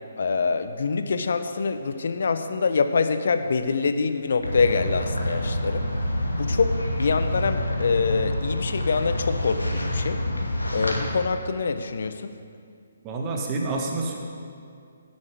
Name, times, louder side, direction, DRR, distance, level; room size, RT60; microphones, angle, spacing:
voice 1, 0.2-5.9 6.4-10.2 10.7-12.3, left 4 dB, 60° left, 10 dB, 0.8 m, -25 dB
sound 1, 4.4-11.1, left 1 dB, 85° left, 2.1 m, -27 dB
voice 2, 13.0-14.2, right 3 dB, 25° right, 0 dB, 1.8 m, -28 dB
16.5 x 8.7 x 5.0 m, 2.3 s
figure-of-eight pair, 135°, 0 cm